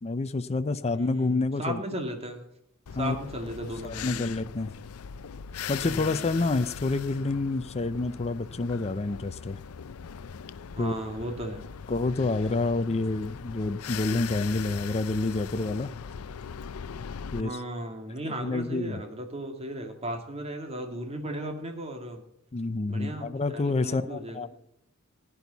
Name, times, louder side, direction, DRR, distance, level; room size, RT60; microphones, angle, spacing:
voice 1, 0.0-1.8 3.0-3.2 3.8-4.7 5.7-9.6 10.8-11.1 11.9-15.9 17.3-17.6 18.4-19.0 22.5-24.5, left 3 dB, 30° left, 11 dB, 0.5 m, -28 dB
voice 2, 1.0-2.5 3.0-4.2 5.8-6.3 10.7-11.6 17.4-22.2 22.9-24.5, right 1 dB, 30° right, 4 dB, 2.2 m, -36 dB
sound 1, 2.9-17.4, left 7 dB, 90° left, 0.5 m, -40 dB
16.0 x 10.0 x 4.1 m, 0.74 s
head